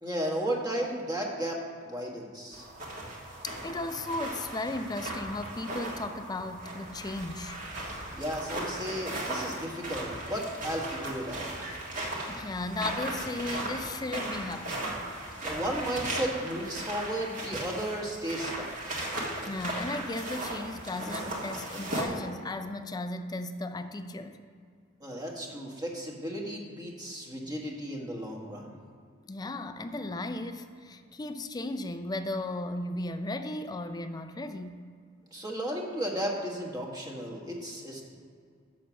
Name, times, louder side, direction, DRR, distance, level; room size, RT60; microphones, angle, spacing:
voice 1, 0.0-2.7 8.1-11.5 15.4-19.1 25.0-28.8 35.3-38.0, right 1 dB, 20° right, -1 dB, 1.4 m, -34 dB
sound 1, 2.5-22.0, right 1 dB, 45° right, 1.7 m, -37 dB
voice 2, 3.4-7.6 12.3-15.0 19.4-24.4 29.3-34.8, left 2 dB, 20° left, 9 dB, 0.4 m, -35 dB
6.9 x 6.1 x 6.9 m, 2.2 s
head